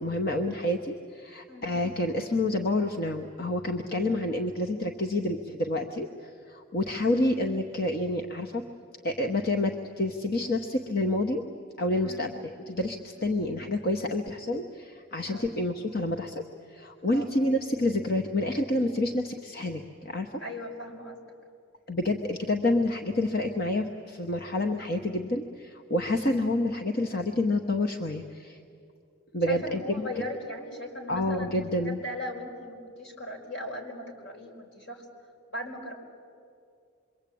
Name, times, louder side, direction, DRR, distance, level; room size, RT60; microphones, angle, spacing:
voice 1, 0.0-8.6 9.0-11.4 11.8-12.3 12.7-20.3 21.9-28.6 29.3-30.1 31.1-32.0, left 1 dB, 50° left, 4 dB, 1.1 m, -28 dB
voice 2, 20.4-21.2 29.4-35.0 35.5-35.9, left 1 dB, 75° left, 1 dB, 5.0 m, -38 dB
27.0 x 23.5 x 8.6 m, 2.4 s
head